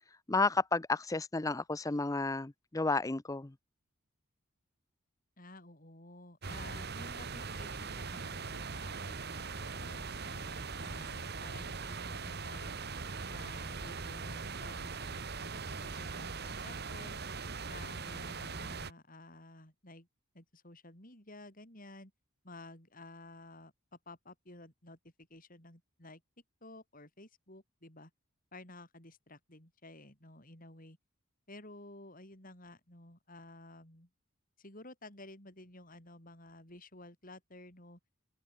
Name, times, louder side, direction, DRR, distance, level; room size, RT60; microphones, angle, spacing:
voice 1, 0.3-3.5, left 3 dB, 15° left, 0.5 m, -32 dB
voice 2, 5.4-12.8 13.3-15.5 15.8-17.2 17.7-20.1 20.3-22.1 22.4-26.2 26.6-28.1 28.5-31.0 31.5-34.1 34.6-38.0, left 2 dB, 40° left, 6.9 m, -53 dB
sound 1, 6.4-18.9, right 4 dB, 50° right, 1.4 m, -41 dB
head